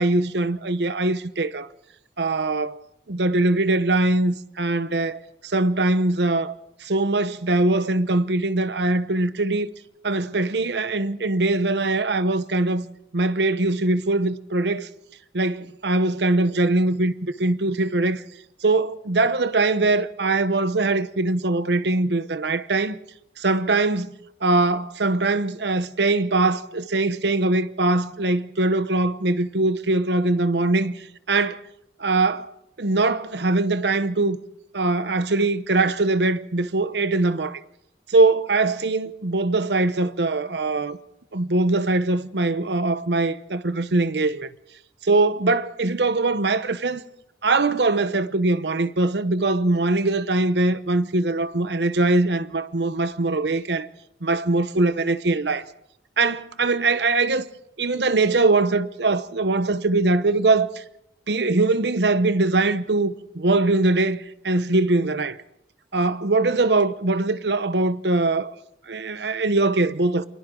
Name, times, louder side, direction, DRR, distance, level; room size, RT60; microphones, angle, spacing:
voice 1, 0.0-1.7 2.2-2.8 3.1-6.5 6.8-9.7 10.0-12.9 13.1-14.9 15.3-18.2 18.6-23.0 23.4-31.6 32.0-32.5 32.8-34.4 34.7-37.6 38.1-41.0 41.3-44.5 45.0-47.0 47.4-53.9 54.2-55.7 56.2-57.4 57.8-60.8 61.3-65.4 65.9-68.5 68.9-70.2, right 2 dB, 75° right, 1.0 m, -22 dB
28.5 x 24.0 x 3.9 m
head